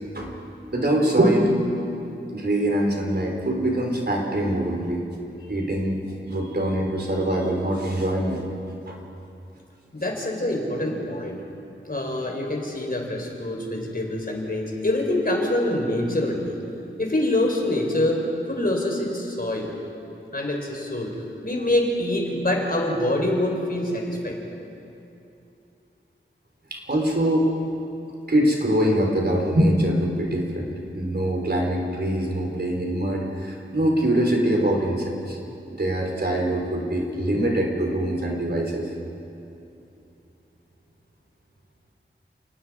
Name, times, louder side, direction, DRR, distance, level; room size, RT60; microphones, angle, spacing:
voice 1, 0.7-1.6 2.3-5.0 5.5-6.0 6.3-8.4 8.9-9.0 26.7-27.5 28.3-35.4 35.7-38.9, right 1 dB, 55° right, 0 dB, 3.8 m, -23 dB
voice 2, 9.9-11.4 11.9-16.6 17.0-19.7 20.3-21.1 21.4-24.4, left 1 dB, 45° left, 1 dB, 3.9 m, -25 dB
29.5 x 19.0 x 4.8 m, 2.8 s
wide cardioid pair, 60°, 20 cm